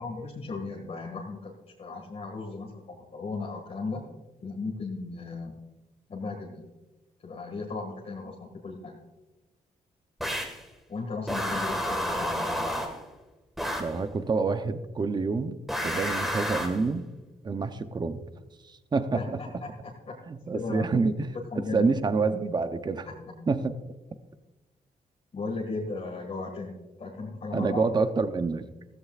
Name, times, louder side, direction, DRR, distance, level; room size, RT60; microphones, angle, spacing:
voice 1, 0.0-4.0 4.4-5.6 6.1-6.6 7.2-9.0 10.9-12.8 19.1-19.3 19.6-20.2 20.5-20.9 21.5-21.9 25.3-27.8, left 3 dB, 50° left, -1 dB, 1.9 m, -36 dB
sound 1, 10.2-10.6 11.3-13.0 13.6-14.0 15.7-16.8, equal, ahead, 1.7 m, -30 dB
voice 2, 13.8-17.1 17.4-18.2 18.6-19.4 20.3-23.1 23.5-23.7 27.5-28.7, right 4 dB, 30° right, 10 dB, 0.7 m, -27 dB
15.0 x 14.5 x 2.5 m, 1.1 s
cardioid pair, 105°, 14 cm